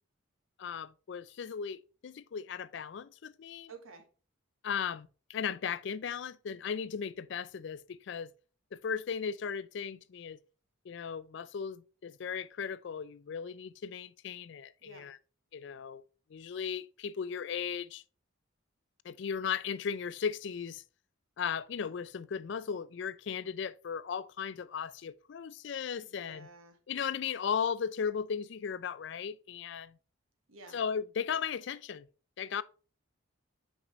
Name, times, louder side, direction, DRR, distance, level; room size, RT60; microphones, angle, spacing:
voice 1, 0.6-3.7 4.6-8.3 8.7-10.4 10.9-15.2 15.5-16.0 16.3-18.0 19.0-20.8 21.4-26.5 26.9-30.0 30.7-32.1 32.4-32.6, left 7 dB, 60° left, 0.3 m, -36 dB
voice 2, 3.7-4.1 14.8-15.1 26.0-26.8 30.5-30.8, right 3 dB, 80° right, 1.3 m, -52 dB
5.8 x 5.4 x 3.1 m
head